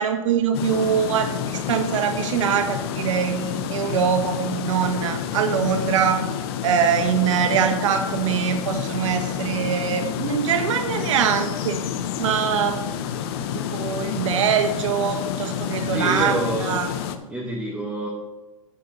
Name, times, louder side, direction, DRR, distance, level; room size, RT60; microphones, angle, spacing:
voice 1, 0.0-6.2 6.6-11.8 12.2-12.8 13.7-16.4 16.6-16.9, right 8 dB, 60° right, 6 dB, 1.1 m, -23 dB
sound 1, 0.5-17.2, left 9 dB, 45° left, 0.8 m, -29 dB
voice 2, 15.9-16.9 17.3-18.1, right 2 dB, 5° right, -3 dB, 1.2 m, -28 dB
9.5 x 5.5 x 5.5 m, 1.1 s
hypercardioid pair, 145°, 18 cm